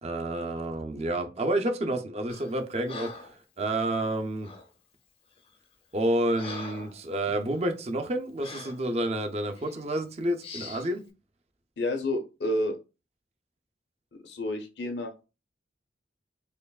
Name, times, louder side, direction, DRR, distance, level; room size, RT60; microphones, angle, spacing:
voice 1, 0.0-4.5 5.9-11.0, right 1 dB, 35° right, 0.5 m, -29 dB
Breathing, 2.3-2.6 2.9-3.4 4.4-4.7 5.4-5.5 5.9-7.0 7.5-7.6 8.4-8.8 9.5-9.8 10.4-10.9, left 4 dB, 30° left, 0.6 m, -42 dB
voice 2, 11.8-12.8 14.2-15.3, left 1 dB, 75° left, 0.8 m, -30 dB
4.4 x 3.0 x 2.3 m
head